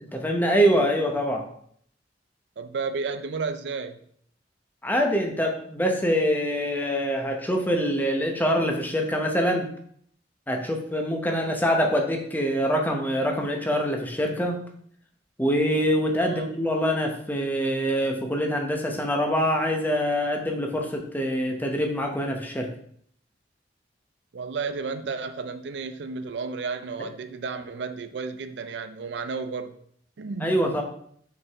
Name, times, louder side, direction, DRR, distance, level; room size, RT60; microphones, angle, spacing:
voice 1, 0.0-1.5 4.8-9.7 10.5-14.6 15.4-22.7 30.4-30.8, equal, 10° left, 2 dB, 0.8 m, -24 dB
voice 2, 2.6-4.0 16.2-16.5 24.3-29.8 30.2-30.6, right 4 dB, 70° right, 10 dB, 0.4 m, -32 dB
5.9 x 4.7 x 3.5 m, 0.63 s
head